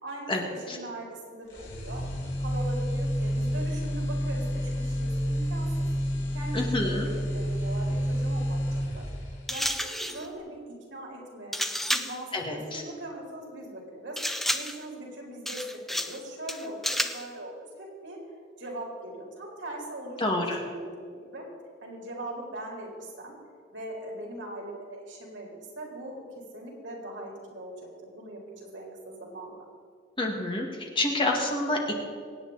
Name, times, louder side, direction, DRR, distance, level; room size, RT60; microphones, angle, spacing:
voice 1, 0.0-2.0 2.4-5.7 6.3-8.6 8.9-9.1 9.5-10.6 10.9-11.6 11.9-14.2 14.5-18.2 18.6-21.5 21.8-23.3 23.7-26.3 26.5-27.7 28.0-29.5, right 1 dB, 70° right, -1 dB, 4.0 m, -40 dB
sound 1, 1.5-9.5, equal, 90° left, 4.1 m, -29 dB
voice 2, 6.5-7.1 12.3-12.8 20.2-20.6 30.2-31.9, left 2 dB, 30° left, 1 dB, 1.9 m, -28 dB
sound 2, 9.5-10.3 11.5-12.2 14.2-14.9 15.5-16.2 16.5-17.3, equal, ahead, 0.5 m, -30 dB
24.5 x 9.1 x 4.1 m, 2.1 s
head